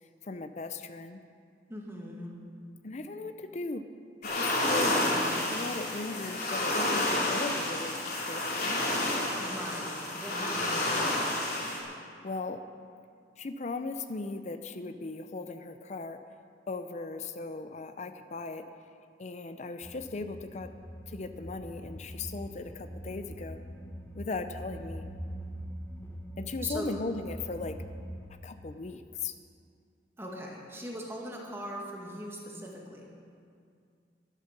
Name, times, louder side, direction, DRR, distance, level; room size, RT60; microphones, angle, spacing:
voice 1, 0.3-1.2 2.8-3.8 4.2-5.0 5.5-8.8 12.2-12.6 13.4-16.2 16.7-18.6 19.2-20.7 21.1-23.6 24.2-25.0 26.4-27.8 28.4-29.3, left 3 dB, 40° left, 9 dB, 0.5 m, -38 dB
voice 2, 1.7-2.4 4.8-5.4 9.4-10.9 26.6-27.0 30.2-33.1, equal, 15° right, -1 dB, 1.9 m, -41 dB
sound 1, 4.2-11.8, left 1 dB, 55° left, 3.0 m, -30 dB
sound 2, 19.8-28.3, equal, 15° left, 1.2 m, -43 dB
11.5 x 11.0 x 6.7 m, 2.3 s
head